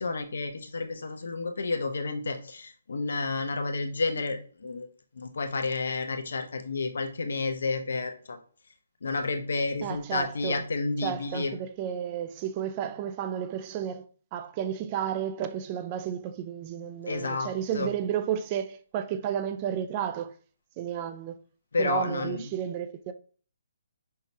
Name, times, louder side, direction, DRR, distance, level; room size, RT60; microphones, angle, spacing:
voice 1, 0.0-4.9 5.2-8.4 9.0-11.5 17.1-17.9 21.7-22.4, left 3 dB, 75° left, 0.7 m, -31 dB
voice 2, 9.8-10.6 11.0-14.0 14.3-20.3 20.8-21.4 21.8-23.1, right 9 dB, 30° right, 0.4 m, -32 dB
5.5 x 2.1 x 2.7 m
hypercardioid pair, 150°, 0 cm